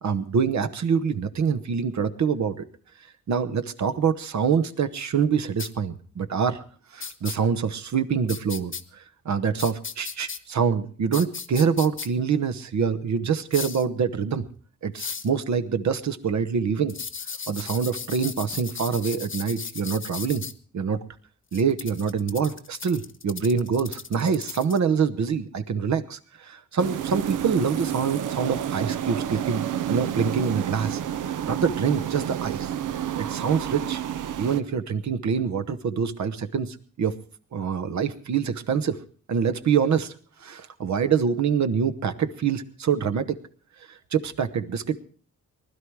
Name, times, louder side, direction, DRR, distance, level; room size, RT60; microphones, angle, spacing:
voice 1, 0.0-2.6 3.3-6.6 6.9-14.5 14.8-16.9 17.5-20.5 20.7-21.0 21.5-31.0 31.4-32.7 33.2-34.0 34.4-37.1 37.5-39.0 39.3-40.1 40.4-43.4 43.9-45.0, right 6 dB, 65° right, 10 dB, 1.1 m, -25 dB
sound 1, 5.6-5.7 7.0-7.4 8.3-8.8 9.6-10.4 11.1-12.1 13.5-13.8 15.0-15.3 16.9-20.5 21.5-24.8, left 6 dB, 40° left, 1.0 m, -36 dB
sound 2, 26.8-34.6, right 10 dB, 80° right, 0.7 m, -29 dB
19.5 x 11.5 x 4.7 m, 0.42 s
cardioid pair, 85°, 31 cm